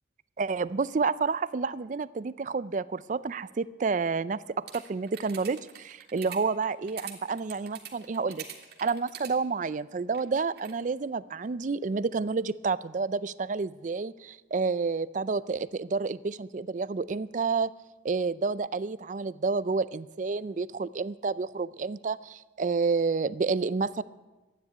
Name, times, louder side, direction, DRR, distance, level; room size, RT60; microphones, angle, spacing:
voice 1, 0.4-8.5 8.8-17.7 18.0-24.0, right 4 dB, 40° right, 17 dB, 0.4 m, -29 dB
sound 1, 4.7-9.3 10.1-10.8, right 9 dB, 60° right, 2.0 m, -43 dB
12.5 x 9.7 x 9.3 m, 1.2 s
head